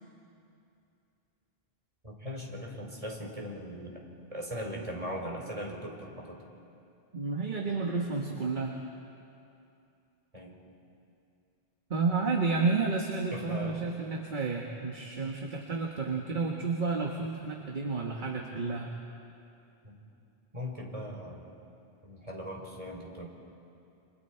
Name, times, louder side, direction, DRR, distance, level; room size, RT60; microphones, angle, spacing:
voice 1, 2.0-4.0 4.3-6.4 10.3-10.5 13.3-13.8 19.8-20.0 20.5-21.5 22.0-23.3, equal, 35° right, -1 dB, 3.6 m, -39 dB
voice 2, 7.1-8.8 11.9-18.9, right 4 dB, 50° right, 0 dB, 1.6 m, -31 dB
30.0 x 25.5 x 4.5 m, 2.6 s
omnidirectional pair, 1.1 m